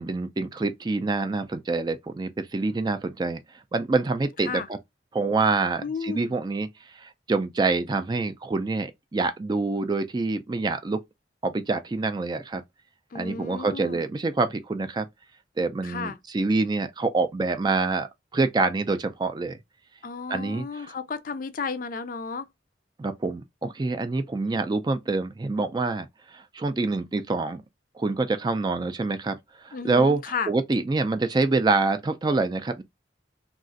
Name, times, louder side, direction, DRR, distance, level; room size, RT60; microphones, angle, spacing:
voice 1, 0.0-3.4 3.7-4.8 5.1-6.7 6.9-11.0 11.4-12.6 13.1-15.1 15.6-18.1 18.3-19.6 20.3-21.0 23.0-27.6 28.0-32.8, right 3 dB, 25° right, 0.3 m, -26 dB
voice 2, 5.8-6.3 13.1-14.0 15.8-16.2 20.0-22.5 29.7-30.5, left 5 dB, 50° left, 0.4 m, -33 dB
2.4 x 2.4 x 3.8 m
head